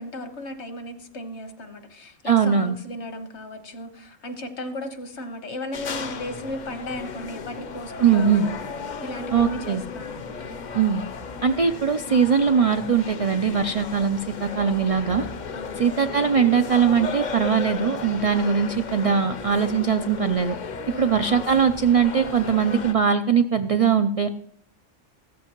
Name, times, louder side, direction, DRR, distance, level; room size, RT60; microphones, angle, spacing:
voice 1, 0.0-8.6 9.0-10.4 15.5-15.8 20.9-21.2, left 1 dB, 65° left, 7 dB, 1.5 m, -36 dB
voice 2, 2.2-2.8 8.0-8.5 9.3-9.8 10.7-11.0 11.4-15.3 15.8-20.6 21.0-24.3, right 6 dB, 65° right, 9 dB, 0.3 m, -21 dB
sound 1, 5.7-22.9, left 5 dB, 45° left, 0.7 m, -35 dB
15.0 x 13.5 x 3.0 m, 0.67 s
omnidirectional pair, 1.3 m